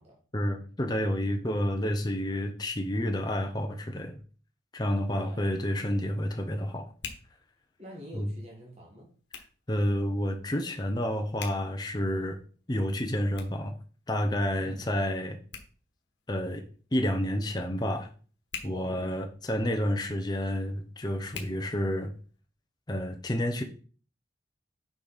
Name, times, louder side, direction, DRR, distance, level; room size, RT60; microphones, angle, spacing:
voice 1, 0.3-4.2 4.7-6.9 8.1-8.3 9.7-12.4 12.7-13.8 14.1-15.4 16.3-16.6 16.9-18.1 18.6-22.1 22.9-23.6, equal, 20° left, 4 dB, 0.7 m, -29 dB
Hands, 4.8-22.4, left 6 dB, 70° left, 1.4 m, -50 dB
voice 2, 5.1-5.4 7.8-9.1 14.5-14.8 18.7-19.1, equal, 35° right, -2 dB, 1.6 m, -46 dB
6.3 x 5.1 x 4.1 m, 0.39 s
head